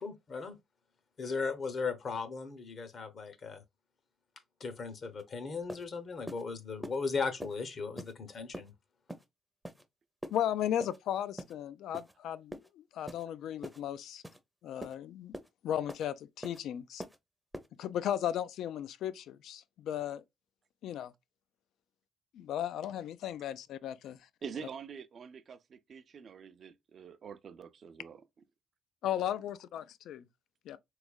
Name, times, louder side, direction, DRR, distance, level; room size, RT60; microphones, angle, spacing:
voice 1, 0.0-0.6 1.2-3.6 4.6-8.7, left 4 dB, 50° left, 0.7 m, -37 dB
sound 1, 5.2-5.3 5.7-5.9 6.3-6.4 6.8-7.0 7.4-7.6 8.0-8.1 8.5-8.7 9.1-9.3 9.6-9.8 10.2-10.4 10.8-11.0 11.4-11.5 11.9-12.1 12.5-12.7 13.1-13.3 13.6-13.8 14.2-14.4 14.8-15.0 15.3-15.5 15.9-16.1 16.4-16.6 17.0-17.2 17.5-17.7, equal, ahead, 0.6 m, -43 dB
voice 2, 10.3-14.2 14.6-15.3 15.6-17.0 17.8-20.2 20.8-21.1 22.3-24.2 29.0-30.2 30.7-30.8, left 10 dB, 80° left, 0.3 m, -35 dB
voice 3, 24.4-28.2, right 6 dB, 55° right, 0.4 m, -46 dB
3.5 x 3.1 x 2.2 m
cardioid pair, 90°, 0 cm